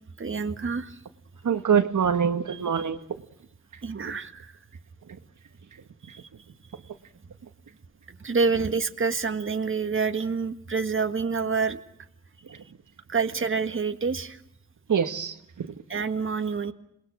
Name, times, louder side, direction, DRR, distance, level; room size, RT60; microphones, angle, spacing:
voice 1, 0.2-0.9 3.8-4.5 8.2-11.8 13.1-14.4 15.9-16.7, right 5 dB, 40° right, 7 dB, 1.7 m, -27 dB
voice 2, 1.4-3.0 14.9-15.7, right 7 dB, 70° right, 7 dB, 1.7 m, -24 dB
27.5 x 20.5 x 6.3 m, 0.75 s
cardioid pair, 55°, 32 cm